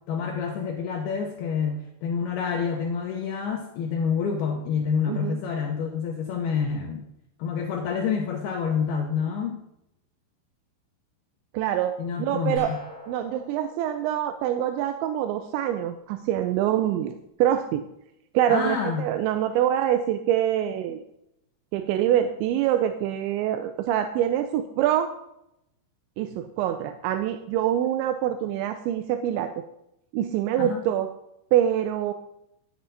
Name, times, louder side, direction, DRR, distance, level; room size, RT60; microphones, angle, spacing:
voice 1, 0.1-7.0 7.4-9.6 12.0-12.8 18.5-19.1 30.6-30.8, left 6 dB, 85° left, 1 dB, 2.2 m, -28 dB
voice 2, 5.1-5.4 11.5-11.9 12.2-12.7 13.1-17.8 18.3-21.0 21.7-25.1 26.2-29.6 30.1-31.1 31.5-32.1, right 11 dB, 85° right, 8 dB, 2.6 m, -25 dB
sound 1, 12.6-15.4, left 1 dB, 40° right, 5.8 m, -46 dB
12.5 x 7.8 x 4.0 m, 0.81 s
omnidirectional pair, 5.8 m